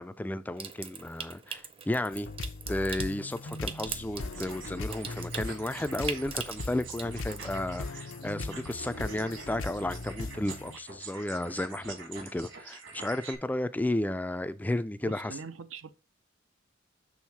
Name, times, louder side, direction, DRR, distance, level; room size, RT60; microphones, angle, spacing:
voice 1, 0.0-2.3 2.7-15.4, left 1 dB, 10° left, 0.3 m, -33 dB
Water tap faucet / Sink (filling or washing) / Trickle dribble, 0.6-7.5, right 6 dB, 30° right, 0.6 m, -42 dB
sound 1, 2.1-10.8, left 2 dB, 85° left, 0.7 m, -39 dB
sound 2, 4.2-13.3, right 4 dB, 65° right, 1.8 m, -46 dB
voice 2, 15.0-15.9, right 5 dB, 85° right, 0.6 m, -42 dB
6.4 x 3.5 x 5.8 m
head